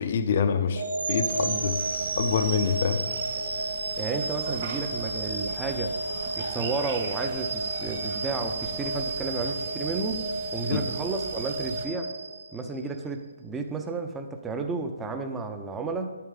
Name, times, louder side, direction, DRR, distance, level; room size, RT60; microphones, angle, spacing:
voice 1, 0.0-1.8 2.2-3.1 10.7-10.8, left 6 dB, 50° left, 9 dB, 0.6 m, -26 dB
sound 1, 0.8-12.9, right 3 dB, 80° right, 0.9 m, -32 dB
sound 2, 1.3-11.9, right 4 dB, 45° right, 1.6 m, -42 dB
voice 2, 4.0-6.0 6.4-10.2 10.5-12.1 12.5-16.1, right 3 dB, 10° right, 5 dB, 0.6 m, -32 dB
9.0 x 8.5 x 3.8 m, 1.2 s
figure-of-eight pair, 140°, 0 cm